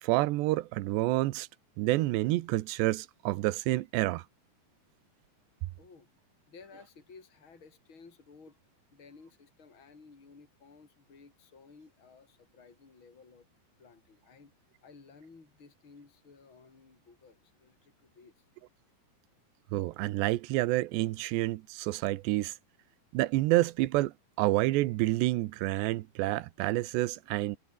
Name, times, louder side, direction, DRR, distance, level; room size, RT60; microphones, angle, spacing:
voice 1, 0.0-1.5 1.8-4.2 19.7-22.5 23.1-27.6, right 18 dB, 80° right, 3.1 m, -28 dB
voice 2, 5.8-6.1 6.5-8.6 8.9-13.5 13.8-14.5 14.8-18.4, left 4 dB, 30° left, 5.3 m, -56 dB
omnidirectional pair, 5.0 m